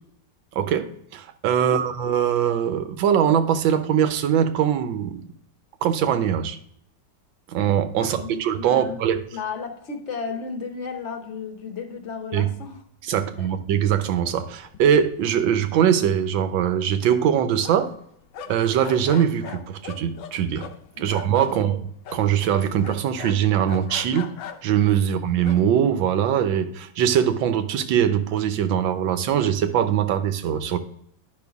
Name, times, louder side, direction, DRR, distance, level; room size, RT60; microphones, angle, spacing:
voice 1, 0.5-5.2 5.8-6.6 7.5-9.2 12.3-12.5 13.1-17.9 18.5-20.6 21.0-24.3 24.6-30.8, right 9 dB, 80° right, 9 dB, 1.5 m, -22 dB
voice 2, 8.0-9.0 9.3-12.8 13.1-13.5 21.0-21.2 21.5-21.7, left 5 dB, 50° left, 6 dB, 1.0 m, -34 dB
sound 1, 14.4-14.5 14.7-15.4 15.7-15.8 16.1-18.0 18.3-21.5 22.0-22.3 22.8-24.8 25.4-25.6, left 7 dB, 85° left, 1.5 m, -39 dB
10.5 x 5.5 x 3.5 m, 0.70 s
omnidirectional pair, 2.1 m